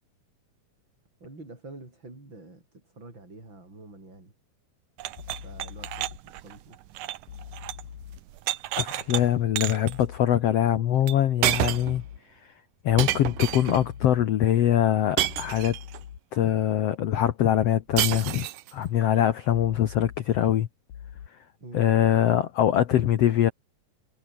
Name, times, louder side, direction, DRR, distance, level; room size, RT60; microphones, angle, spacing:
voice 1, 1.2-4.3 5.4-6.8 21.6-21.9, right 2 dB, 30° right, 8.5 m, -46 dB
sound 1, 5.0-7.9 8.2-9.2 9.6-10.0 11.1-11.2 11.4-12.0 13.0-13.9 15.2-16.0 18.0-18.7, right 14 dB, 70° right, 2.4 m, -30 dB
sound 2, 5.2-6.2 7.3-8.2 9.9-10.2 11.5-12.2 12.9-14.2 15.3-16.2 17.9-18.2 19.5-20.2 20.9-21.3, left 9 dB, 60° left, 3.4 m, -42 dB
voice 2, 8.8-12.0 12.8-15.8 16.3-18.5 18.7-20.7 21.7-23.5, left 11 dB, 75° left, 1.4 m, -23 dB
omnidirectional pair, 4.4 m